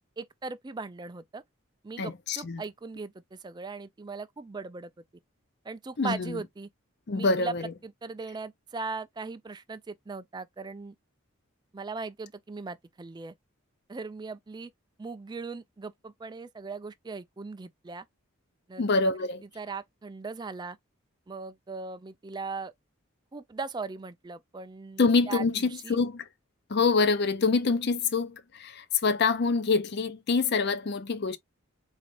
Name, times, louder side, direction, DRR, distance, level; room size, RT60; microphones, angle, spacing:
voice 1, 0.2-1.4 1.8-4.9 5.6-6.7 7.1-7.5 7.8-10.9 11.7-13.3 13.9-14.7 15.0-18.1 18.7-19.1 19.6-20.8 21.3-22.7 23.3-26.0, right 4 dB, 20° right, 0.3 m, -39 dB
voice 2, 2.0-2.6 6.0-6.4 7.1-7.6 18.8-19.4 25.0-26.3 26.7-31.4, left 4 dB, 50° left, 0.5 m, -26 dB
4.0 x 2.4 x 3.1 m
head